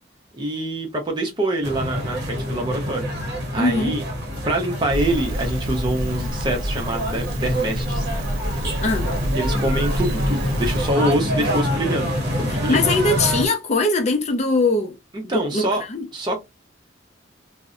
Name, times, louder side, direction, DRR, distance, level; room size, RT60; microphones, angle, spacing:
voice 1, 0.3-3.1 3.5-4.1 4.4-8.1 9.4-12.8 15.3-15.8 16.1-16.4, right 1 dB, 25° right, 0.6 m, -25 dB
sound 1, 1.6-13.5, equal, 55° right, 0.8 m, -26 dB
voice 2, 3.6-4.0 8.8-9.1 12.5-15.0 15.2-16.0, left 2 dB, 35° left, 0.4 m, -21 dB
Crackle, 4.9-10.9, right 1 dB, 90° right, 0.6 m, -28 dB
2.6 x 2.0 x 2.4 m
head